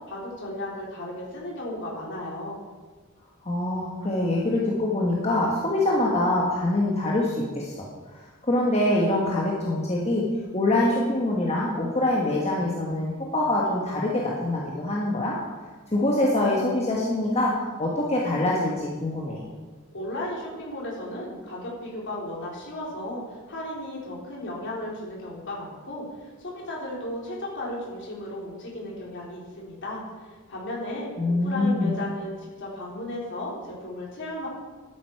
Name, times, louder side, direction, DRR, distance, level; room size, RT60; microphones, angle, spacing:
voice 1, 0.1-2.6 19.9-23.2 23.5-26.0 26.4-33.5 33.8-34.5, left 1 dB, 60° left, -4 dB, 3.7 m, -35 dB
voice 2, 3.4-7.9 8.4-10.2 10.5-15.4 15.9-17.5 17.8-19.4 31.2-32.0, left 1 dB, 30° left, -4 dB, 1.4 m, -24 dB
12.0 x 9.4 x 4.7 m, 1.3 s
head